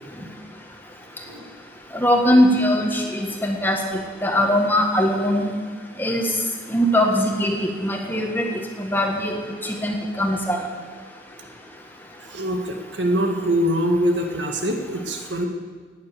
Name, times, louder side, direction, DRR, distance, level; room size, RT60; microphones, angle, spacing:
voice 1, 1.9-5.5 6.0-6.3 6.7-10.6, equal, 10° left, 1 dB, 1.7 m, -21 dB
voice 2, 12.3-15.4, equal, 80° right, 3 dB, 1.8 m, -23 dB
18.0 x 9.6 x 6.8 m, 1.5 s
head